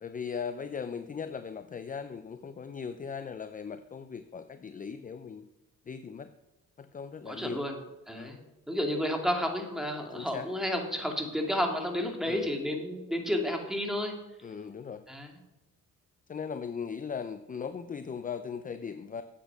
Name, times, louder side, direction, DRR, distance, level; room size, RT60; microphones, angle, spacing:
voice 1, 0.0-5.4 5.9-6.3 6.8-7.6 8.1-8.4 10.1-10.5 12.2-12.5 14.4-15.0 16.3-19.2, left 6 dB, 25° left, 10 dB, 0.6 m, -38 dB
voice 2, 7.3-7.8 8.1-8.4 8.7-14.1 15.1-15.3, equal, ahead, 2 dB, 2.2 m, -31 dB
8.6 x 8.2 x 6.1 m, 1.0 s
cardioid pair, 90°, 30 cm